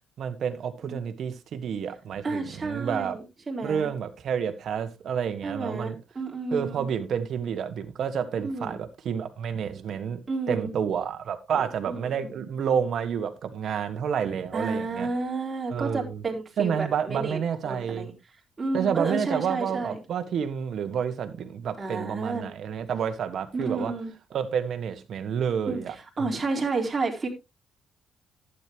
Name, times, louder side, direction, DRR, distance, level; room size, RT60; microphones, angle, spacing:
voice 1, 0.2-3.2 3.6-6.0 6.5-10.2 10.5-15.1 15.7-16.2 16.6-18.1 18.7-23.9 24.3-26.3, right 7 dB, 65° right, 1.7 m, -29 dB
voice 2, 2.2-3.9 5.4-6.9 8.4-8.8 10.3-10.7 11.5-12.5 14.5-17.4 17.6-18.1 18.6-20.0 21.8-22.5 23.5-24.1 25.7-27.3, right 3 dB, 30° right, 3.7 m, -31 dB
12.0 x 9.6 x 3.1 m
cardioid pair, 90°, 0 cm